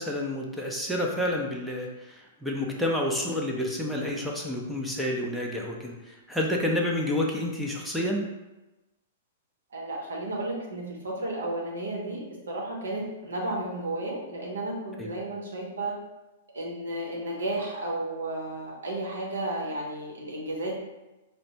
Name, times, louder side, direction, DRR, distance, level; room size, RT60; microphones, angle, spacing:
voice 1, 0.0-1.9 2.4-5.9 6.3-8.3 15.0-15.1, left 1 dB, ahead, -2 dB, 0.5 m, -29 dB
voice 2, 9.7-15.9 16.5-20.7, right 1 dB, 75° right, -2 dB, 0.8 m, -33 dB
4.9 x 2.1 x 2.7 m, 1.0 s
figure-of-eight pair, 110°, 0 cm